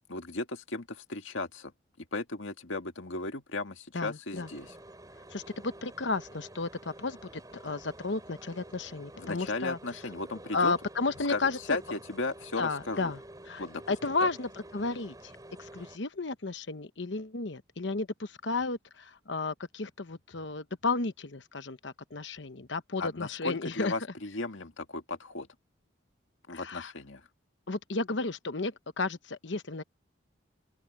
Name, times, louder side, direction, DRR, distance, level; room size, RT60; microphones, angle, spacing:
voice 1, 0.1-1.7 2.0-4.8 9.2-10.7 11.3-13.1 13.6-13.8 14.2-14.3 23.0-25.5 26.5-27.2, left 3 dB, 80° left, 1.9 m, -36 dB
voice 2, 3.9-4.5 5.3-9.8 10.5-11.8 12.6-13.2 13.5-15.3 15.6-23.9 26.5-26.9 27.7-29.8, left 3 dB, 65° left, 1.1 m, -33 dB
sound 1, 4.3-16.0, right 1 dB, 20° right, 4.6 m, -49 dB
open air
head